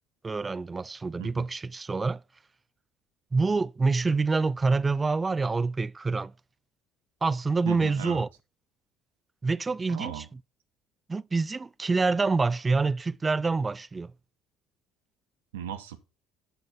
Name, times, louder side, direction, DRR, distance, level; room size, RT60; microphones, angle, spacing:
voice 1, 0.2-2.2 3.3-6.3 7.2-8.3 9.4-10.1 11.1-14.1, right 4 dB, 25° right, 0.3 m, -26 dB
voice 2, 7.6-8.2 9.9-10.3 15.5-16.0, right 10 dB, 85° right, 0.9 m, -36 dB
8.8 x 4.5 x 5.5 m
hypercardioid pair, 65°, 0 cm